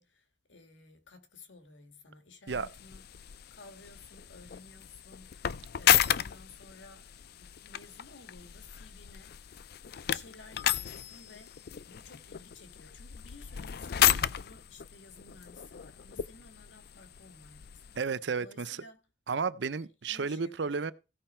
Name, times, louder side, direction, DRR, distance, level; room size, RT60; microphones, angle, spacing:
voice 1, 0.0-3.3 3.5-9.6 10.1-17.9 18.4-19.0 19.6-19.7 20.1-20.7, left 3 dB, 80° left, 2.0 m, -54 dB
sound 1, 2.5-18.0, left 11 dB, 60° left, 0.4 m, -33 dB
voice 2, 18.0-18.8 19.3-20.9, right 5 dB, 70° right, 0.6 m, -33 dB
16.0 x 5.5 x 4.4 m
head